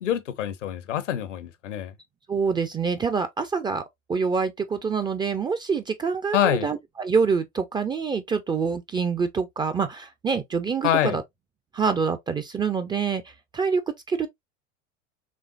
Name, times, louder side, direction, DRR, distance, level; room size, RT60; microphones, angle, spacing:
voice 1, 0.0-1.9 6.3-6.7 10.8-11.2, left 10 dB, 70° left, 0.8 m, -25 dB
voice 2, 2.3-3.8 4.1-11.2 11.7-13.8 14.1-14.3, right 5 dB, 10° right, 0.4 m, -26 dB
5.1 x 3.4 x 2.4 m
figure-of-eight pair, 80°, 39 cm